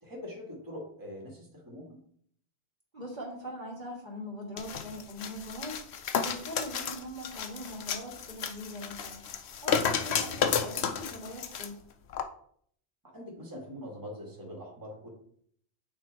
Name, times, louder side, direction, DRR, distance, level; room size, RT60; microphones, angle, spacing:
voice 1, 0.0-2.0 13.1-15.1, left 1 dB, 20° right, -3 dB, 2.0 m, -43 dB
voice 2, 2.9-5.8 6.2-9.2 9.6-11.8, equal, 50° right, -4 dB, 2.2 m, -41 dB
sound 1, 4.6-11.7 12.1-12.2, left 7 dB, 90° left, 1.0 m, -32 dB
8.7 x 3.8 x 4.5 m, 0.63 s
omnidirectional pair, 1.1 m